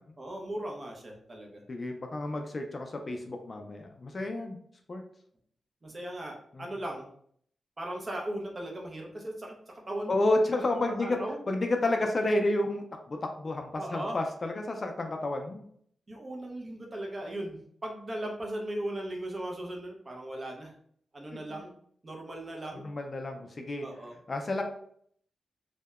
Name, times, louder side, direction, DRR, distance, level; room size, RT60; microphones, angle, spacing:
voice 1, 0.2-1.6 5.8-7.1 7.8-10.2 10.5-11.4 13.8-14.2 16.1-20.7 21.1-21.7 22.0-22.9 23.8-24.2, right 1 dB, 35° right, 0 dB, 0.6 m, -38 dB
voice 2, 1.7-4.6 4.9-5.0 6.5-6.7 10.1-11.2 11.5-12.8 13.1-15.6 22.7-23.9 24.3-24.6, left 2 dB, 40° left, 4 dB, 0.3 m, -30 dB
2.7 x 2.1 x 2.3 m, 0.63 s
wide cardioid pair, 115°, 0 cm